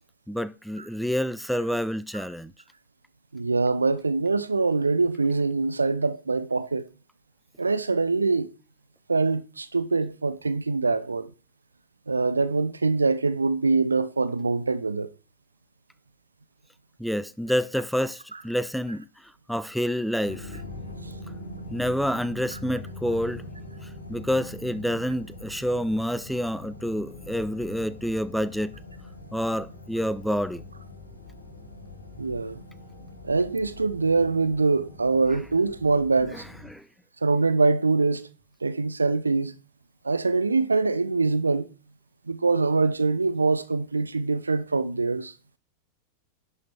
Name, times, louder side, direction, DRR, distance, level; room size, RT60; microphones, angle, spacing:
voice 1, 0.3-2.5 17.0-20.6 21.7-23.4 23.8-28.8 29.3-30.6 36.3-36.9, equal, ahead, 0.4 m, -28 dB
voice 2, 3.3-6.9 7.6-8.5 9.1-11.3 12.1-15.1 32.2-32.6 33.3-36.4 37.2-38.3 38.6-39.5 40.0-41.7 42.3-45.3, right 3 dB, 80° right, 0.7 m, -24 dB
sound 1, 20.2-36.7, left 1 dB, 75° left, 2.5 m, -43 dB
10.5 x 5.9 x 4.4 m
figure-of-eight pair, 90°, 0 cm